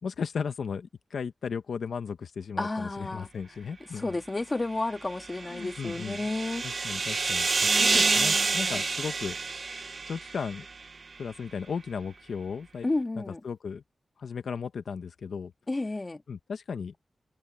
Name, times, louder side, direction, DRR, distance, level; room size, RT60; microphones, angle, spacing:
voice 1, 0.0-4.2 5.5-6.2 6.6-9.4 10.1-10.7 11.2-12.9 13.2-13.8 14.2-15.5 16.3-16.9, left 6 dB, 90° left, 0.9 m, -35 dB
voice 2, 2.6-3.3 3.9-6.9 7.6-8.8 12.8-13.4 15.7-16.2, left 2 dB, 25° left, 1.8 m, -32 dB
sound 1, 5.1-10.7, right 4 dB, 50° right, 0.6 m, -28 dB
wide cardioid pair, 125°, 0 cm